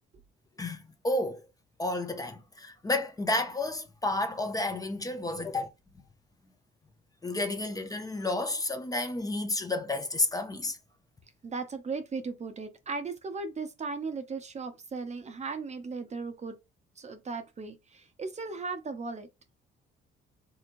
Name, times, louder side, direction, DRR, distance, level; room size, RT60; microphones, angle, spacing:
voice 1, 0.6-1.4 1.8-5.7 7.2-10.8, left 2 dB, 20° left, 0.6 m, -31 dB
voice 2, 11.4-16.6 17.0-19.3, right 4 dB, 35° right, 0.6 m, -37 dB
3.5 x 2.9 x 2.5 m
cardioid pair, 90°, 20 cm